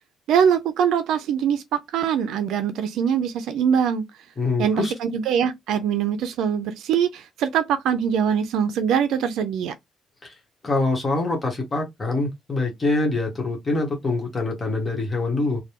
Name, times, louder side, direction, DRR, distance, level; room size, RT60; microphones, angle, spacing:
voice 1, 0.3-4.0 4.6-9.7, right 8 dB, 85° right, 0.3 m, -23 dB
voice 2, 4.4-4.9 10.2-10.3 10.6-15.6, left 2 dB, 30° left, 1.2 m, -24 dB
3.2 x 2.2 x 2.8 m
cardioid pair, 90°, 0 cm